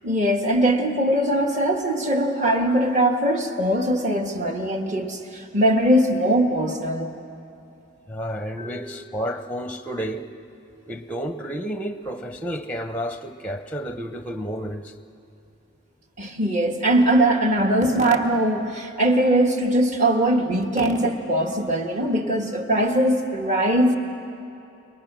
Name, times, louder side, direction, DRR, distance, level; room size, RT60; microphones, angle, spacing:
voice 1, 0.0-7.1 8.6-8.9 16.2-24.0, right 1 dB, 35° right, 4 dB, 1.6 m, -21 dB
voice 2, 8.1-10.3 10.9-14.9, equal, 5° left, 8 dB, 0.7 m, -31 dB
28.5 x 23.0 x 6.2 m, 2.7 s
head